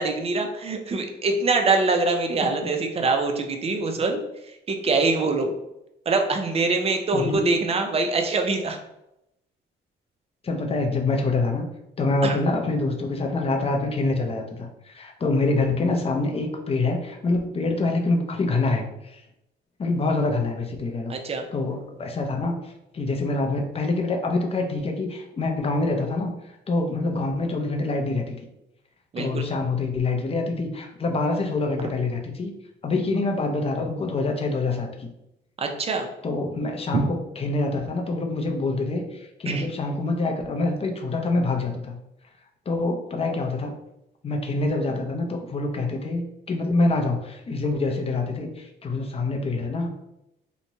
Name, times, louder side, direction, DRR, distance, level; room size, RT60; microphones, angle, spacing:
voice 1, 0.0-4.2 4.5-5.5 6.1-8.8 12.2-12.4 21.1-21.4 29.1-29.5 31.8-31.9 35.6-36.1 36.9-37.0 39.5-39.7, right 3 dB, 30° right, 4 dB, 0.5 m, -24 dB
voice 2, 7.1-7.6 10.4-11.7 12.0-19.2 19.8-21.1 21.5-28.4 29.2-32.5 32.8-35.1 36.2-41.9 42.7-43.7 44.2-46.2 46.5-50.0, left 2 dB, 30° left, 2 dB, 0.5 m, -26 dB
2.9 x 2.1 x 2.7 m, 0.86 s
cardioid pair, 90°, 20 cm